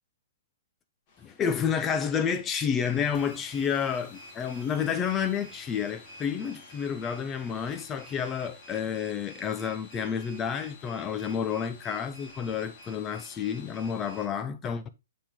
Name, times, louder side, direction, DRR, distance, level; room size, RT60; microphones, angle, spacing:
sound 1, 1.1-14.3, left 2 dB, 35° left, 2.1 m, -50 dB
voice 1, 1.2-14.9, left 7 dB, 20° left, 0.6 m, -30 dB
sound 2, 3.1-8.6, right 7 dB, 25° right, 1.8 m, -58 dB
7.1 x 4.8 x 3.7 m
hypercardioid pair, 140°, 0 cm